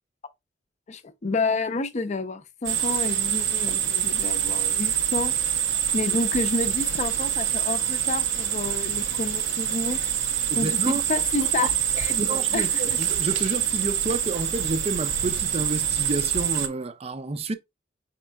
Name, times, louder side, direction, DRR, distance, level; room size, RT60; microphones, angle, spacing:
voice 1, 0.9-5.3 5.9-10.0 10.6-11.7 12.0-13.0, left 3 dB, 40° left, 0.5 m, -29 dB
sound 1, 2.6-16.7, right 9 dB, 90° right, 0.7 m, -25 dB
voice 2, 10.5-11.0 11.4-11.7 12.2-17.5, right 3 dB, 35° right, 0.5 m, -30 dB
5.3 x 4.3 x 2.3 m
head